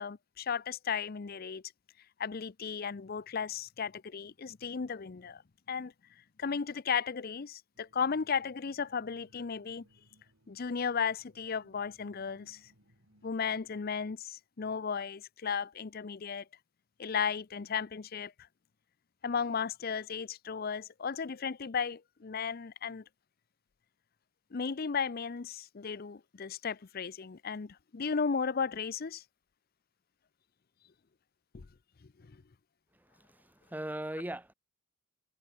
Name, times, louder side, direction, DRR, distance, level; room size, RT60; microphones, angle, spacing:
voice 1, 0.0-1.6 2.2-5.4 5.7-5.9 6.4-9.8 10.5-12.6 13.2-16.4 17.0-18.3 19.2-23.0 24.5-29.2 31.5-31.7 32.2-32.4, left 6 dB, 45° left, 0.5 m, -35 dB
sound 1, 7.7-14.1, equal, 75° right, 7.1 m, -66 dB
voice 2, 33.2-34.5, right 1 dB, 10° right, 0.9 m, -39 dB
head